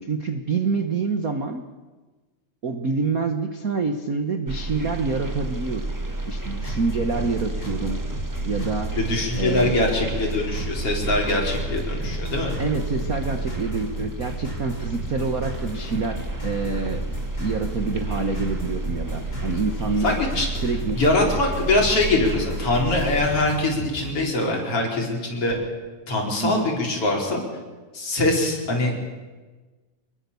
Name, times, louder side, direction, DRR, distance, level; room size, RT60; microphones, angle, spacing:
voice 1, 0.0-1.6 2.6-5.9 6.3-8.0 8.4-8.9 9.4-9.8 12.6-17.0 17.4-20.2 20.6-21.0 26.4-26.7, right 4 dB, 60° right, 6 dB, 0.9 m, -27 dB
sound 1, 4.5-23.3, right 2 dB, 30° right, 0.3 m, -31 dB
sound 2, 6.4-24.2, right 1 dB, 30° left, 6.5 m, -35 dB
voice 2, 9.0-12.5 20.0-20.5 20.9-25.6 26.1-27.4 27.9-28.9, left 2 dB, 45° left, 0 dB, 5.4 m, -23 dB
25.5 x 21.5 x 7.0 m, 1.3 s
omnidirectional pair, 3.6 m